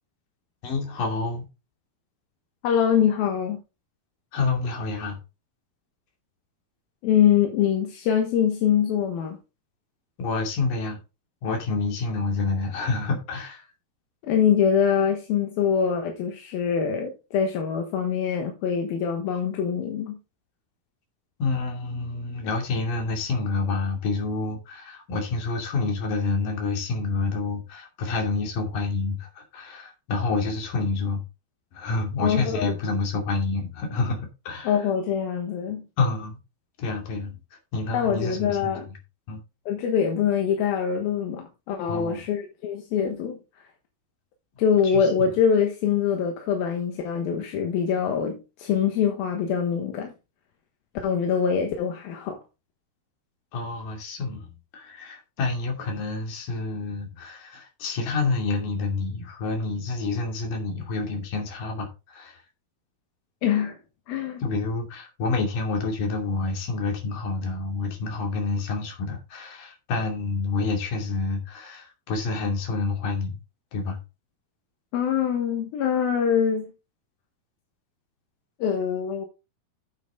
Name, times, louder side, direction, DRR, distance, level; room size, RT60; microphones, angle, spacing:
voice 1, 0.6-1.5 4.3-5.2 10.2-11.0 11.4-13.7 21.4-31.2 31.7-34.8 36.0-36.4 36.8-37.4 37.7-38.7 39.3-39.4 41.9-42.3 44.8-45.4 53.5-54.5 54.7-62.4 64.4-73.4 73.7-74.0, left 3 dB, 65° left, 4.2 m, -28 dB
voice 2, 2.6-3.6 7.0-9.4 14.2-20.2 32.2-32.7 34.6-35.8 37.9-38.9 39.7-43.4 44.6-50.1 51.0-52.4 63.4-63.8 64.1-64.4 74.9-76.7 78.6-79.3, left 7 dB, 80° left, 3.1 m, -24 dB
9.2 x 8.2 x 3.7 m
omnidirectional pair, 4.3 m